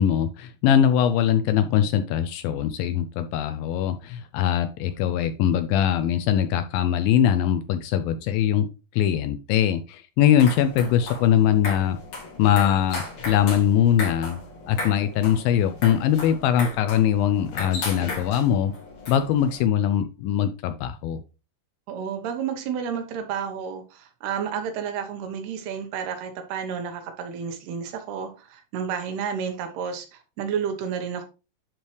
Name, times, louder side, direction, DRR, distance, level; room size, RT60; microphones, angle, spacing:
voice 1, 0.0-12.0 12.4-14.4 14.7-18.7 19.1-21.2, left 9 dB, 80° left, 9 dB, 2.2 m, -22 dB
sound 1, 10.2-19.6, left 3 dB, 55° left, 4.1 m, -36 dB
voice 2, 21.9-31.2, right 7 dB, 85° right, 6 dB, 3.2 m, -31 dB
10.5 x 4.6 x 3.2 m, 0.31 s
omnidirectional pair, 4.5 m